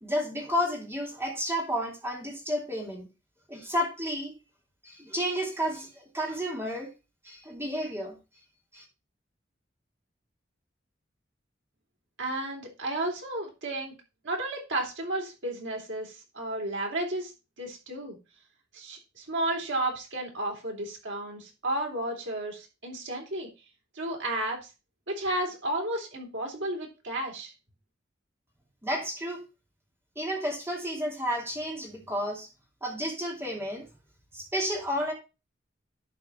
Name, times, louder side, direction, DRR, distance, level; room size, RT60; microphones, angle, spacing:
voice 1, 0.0-3.1 3.5-4.3 4.8-6.9 7.2-8.2 8.7-8.8 28.8-29.4 30.2-32.5 32.8-33.9 34.3-35.1, equal, 15° right, 0 dB, 2.5 m, -31 dB
voice 2, 12.2-13.9 14.2-17.3 17.6-18.2 18.7-23.5 23.9-24.7 25.1-27.5, right 1 dB, 75° right, 0 dB, 3.6 m, -32 dB
11.0 x 4.5 x 4.2 m, 0.28 s
head